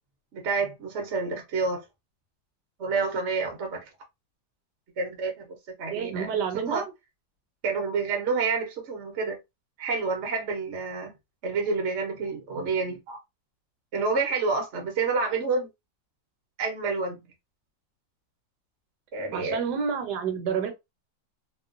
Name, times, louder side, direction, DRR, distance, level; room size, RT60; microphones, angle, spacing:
voice 1, 0.3-1.8 2.8-3.8 5.0-5.5 5.8-6.3 6.5-6.8 7.6-9.4 9.8-11.1 11.4-13.2 13.9-15.7 16.6-17.2 19.1-19.6, right 4 dB, 50° right, 0.8 m, -28 dB
voice 2, 5.9-6.8 19.3-20.7, right 6 dB, 70° right, 1.3 m, -29 dB
3.0 x 2.2 x 2.4 m
omnidirectional pair, 1.9 m